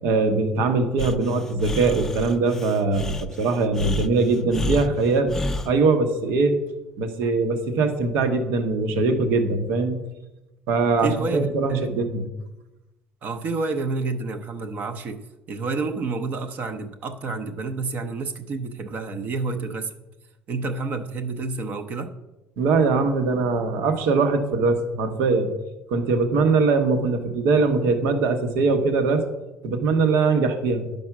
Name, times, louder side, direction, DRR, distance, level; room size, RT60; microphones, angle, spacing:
voice 1, 0.0-5.3 5.6-6.5 7.0-10.0 10.7-12.2 22.6-25.5 25.9-29.2 29.6-30.8, right 3 dB, 85° right, 7 dB, 1.2 m, -21 dB
Breathing, 1.0-5.7, left 2 dB, 10° left, 0.4 m, -30 dB
voice 2, 11.0-11.9 13.2-15.2 15.5-19.9 20.5-22.1, right 3 dB, 40° right, 8 dB, 0.7 m, -29 dB
11.0 x 5.3 x 6.0 m, 1.0 s
cardioid pair, 175°, 4 cm